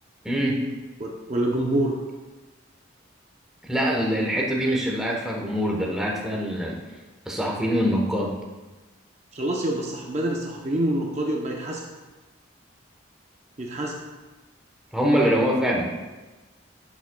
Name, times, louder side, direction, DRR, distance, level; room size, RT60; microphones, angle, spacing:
voice 1, 0.2-0.6 3.6-6.8 7.3-8.4 14.9-15.9, equal, 5° right, -2 dB, 1.0 m, -24 dB
voice 2, 1.0-1.9 9.3-11.8 13.6-14.0, right 1 dB, 35° right, -1 dB, 0.7 m, -26 dB
11.0 x 7.2 x 2.3 m, 1.2 s
head